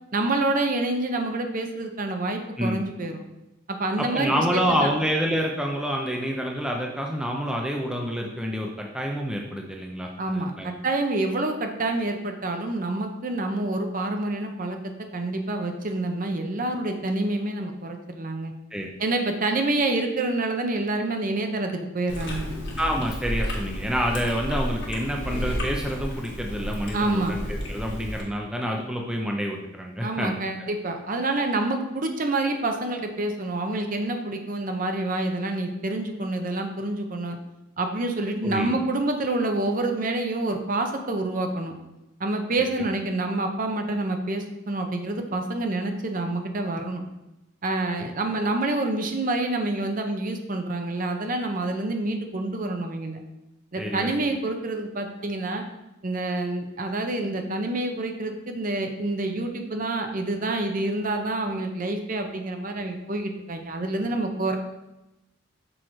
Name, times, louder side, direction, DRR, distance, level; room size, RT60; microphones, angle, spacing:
voice 1, 0.1-3.2 3.7-4.9 10.2-14.8 15.1-18.5 19.0-22.6 26.9-27.4 30.0-37.4 37.8-41.8 42.2-47.1 47.6-53.2 53.7-55.6 56.0-64.6, right 2 dB, 40° right, 5 dB, 0.7 m, -27 dB
voice 2, 4.0-10.7 18.7-18.9 22.8-30.4 38.4-38.7 53.8-54.1, equal, 5° right, 1 dB, 0.5 m, -28 dB
Chewing mastication, 22.1-28.2, equal, 55° left, 1.7 m, -32 dB
6.3 x 4.4 x 4.7 m, 0.96 s
head